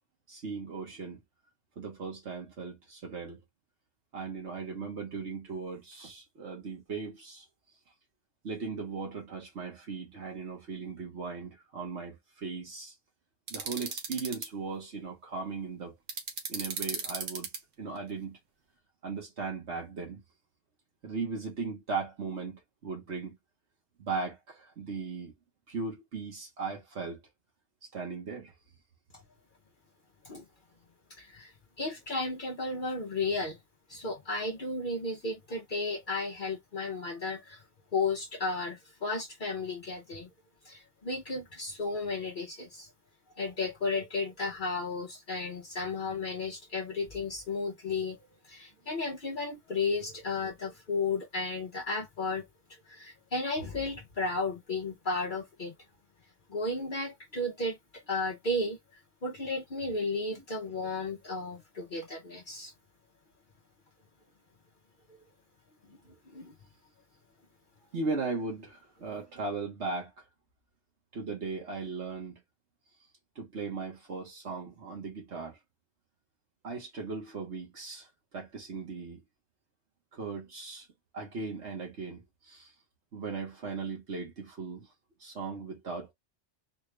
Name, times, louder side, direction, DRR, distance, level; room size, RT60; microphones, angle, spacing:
voice 1, 0.3-1.2 1.8-3.4 4.1-7.5 8.4-12.9 13.5-16.0 16.5-17.5 17.8-18.4 19.0-20.2 21.0-23.4 24.0-25.3 25.7-27.3 27.9-28.5 67.9-70.1 71.1-72.4 73.3-75.6 76.6-79.2 80.1-80.9 81.1-82.7 83.1-84.9 85.2-86.1, right 4 dB, 65° right, 1.5 m, -38 dB
sound 1, 13.5-14.5 16.1-17.6, right 5 dB, 85° right, 1.4 m, -35 dB
voice 2, 31.2-31.5 31.8-33.6 33.9-37.6 37.9-40.3 40.6-42.9 43.4-48.2 48.4-52.4 52.9-55.7 56.5-58.8 59.2-62.7 66.3-66.5, left 3 dB, 45° left, 0.9 m, -33 dB
4.2 x 2.4 x 3.2 m
omnidirectional pair, 1.2 m